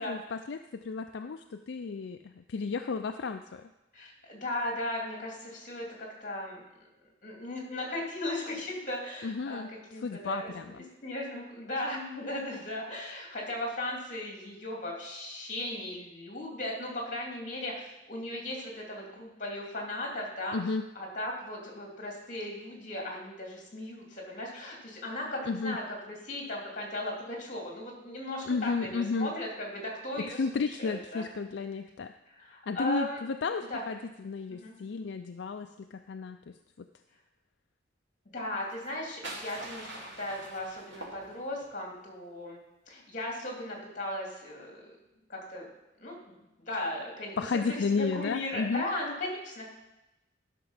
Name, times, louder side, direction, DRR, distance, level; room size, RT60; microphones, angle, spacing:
voice 1, 0.0-3.6 9.2-9.7 10.0-10.7 20.5-20.8 25.5-25.8 28.5-29.3 30.4-32.1 32.7-36.5 47.4-48.8, left 4 dB, 70° left, 7 dB, 0.4 m, -33 dB
voice 2, 3.9-6.6 7.2-20.7 20.9-31.3 32.3-33.2 33.6-33.8 34.5-34.7 38.3-42.6 42.9-44.9 45.3-45.7 46.0-46.3 46.7-49.7, left 1 dB, 40° left, -1 dB, 2.9 m, -37 dB
sound 1, 38.7-41.7, right 1 dB, 80° right, 2.6 m, -44 dB
12.0 x 6.0 x 5.7 m, 0.95 s
head